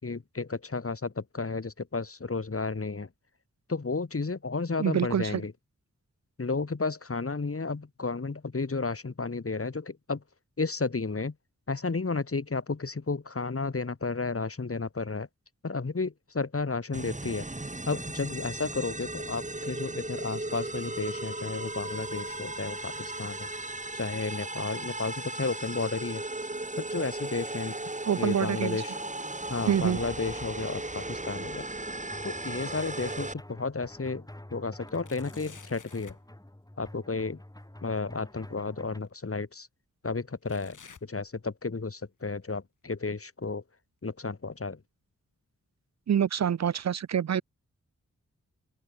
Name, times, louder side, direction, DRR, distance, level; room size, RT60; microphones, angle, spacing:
voice 1, 0.0-3.1 3.7-5.5 6.4-10.2 10.6-11.3 11.7-15.3 15.6-17.5 17.9-23.5 23.9-26.2 26.8-27.8 28.2-29.0 29.5-31.7 32.2-36.2 36.8-37.4 37.8-39.7 40.0-43.6 44.0-44.8, left 4 dB, 45° left, 5.0 m, -32 dB
voice 2, 4.8-5.4 28.1-28.8 29.7-30.0 46.1-47.4, right 8 dB, 60° right, 0.6 m, -26 dB
sound 1, 16.9-33.3, right 2 dB, 25° right, 4.2 m, -36 dB
sound 2, 27.2-39.0, left 1 dB, 10° left, 5.6 m, -49 dB
sound 3, 30.3-31.0 31.4-33.3 33.8-33.9 34.9-36.3 38.0-38.1 39.0-39.1 40.4-41.8 42.2-42.6 43.2-43.3 44.2-44.3, left 6 dB, 75° left, 5.6 m, -55 dB
open air
cardioid pair, 60°, 31 cm